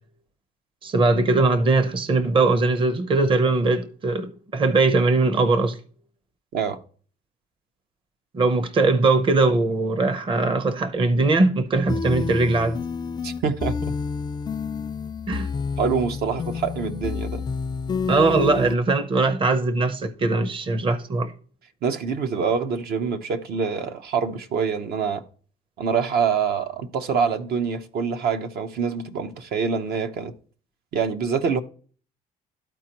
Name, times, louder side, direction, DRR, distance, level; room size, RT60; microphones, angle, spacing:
voice 1, 0.8-5.8 8.3-12.8 15.3-15.5 18.0-21.3, right 3 dB, 30° right, 0.7 m, -20 dB
sound 1, 11.9-18.7, left 5 dB, 25° left, 0.4 m, -29 dB
voice 2, 13.2-13.9 15.8-17.5 21.8-25.2 25.8-30.3 30.9-31.6, right 6 dB, 65° right, 0.9 m, -25 dB
13.0 x 4.4 x 2.9 m
cardioid pair, 110°, 17 cm